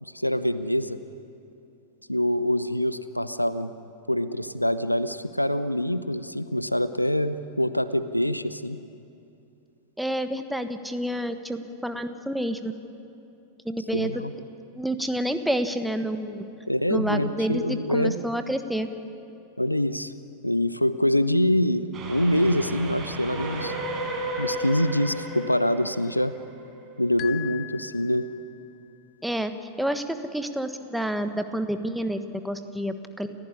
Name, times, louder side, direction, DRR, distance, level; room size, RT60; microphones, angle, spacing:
voice 1, 0.0-1.0 2.1-3.7 4.1-8.8 13.9-14.3 16.7-18.2 19.6-20.1 20.4-23.7 24.4-26.3 27.0-28.3, left 1 dB, 90° left, 14 dB, 0.7 m, -25 dB
voice 2, 10.0-12.8 13.6-14.1 14.7-16.5 16.9-18.9 29.2-29.5 29.8-33.3, equal, ahead, 8 dB, 1.3 m, -29 dB
Train, 21.9-27.2, right 2 dB, 30° right, 5.2 m, -34 dB
sound 1, 27.2-28.7, left 15 dB, 40° left, 0.6 m, -40 dB
29.5 x 14.5 x 9.8 m, 2.7 s
figure-of-eight pair, 90°, 0 cm